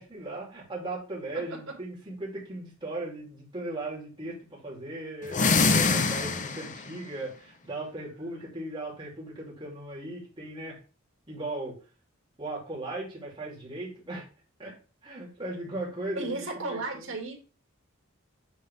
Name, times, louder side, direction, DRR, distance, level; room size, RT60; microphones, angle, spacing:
voice 1, 0.0-10.8 11.3-11.8 12.4-14.3 14.6-14.8 15.0-17.1, right 2 dB, 25° right, -5 dB, 3.0 m, -37 dB
voice 2, 1.3-1.8 16.1-17.3, right 3 dB, 80° right, 2 dB, 2.2 m, -34 dB
sound 1, 5.2-6.9, left 4 dB, 40° left, 0.7 m, -24 dB
9.5 x 3.8 x 3.5 m, 0.35 s
head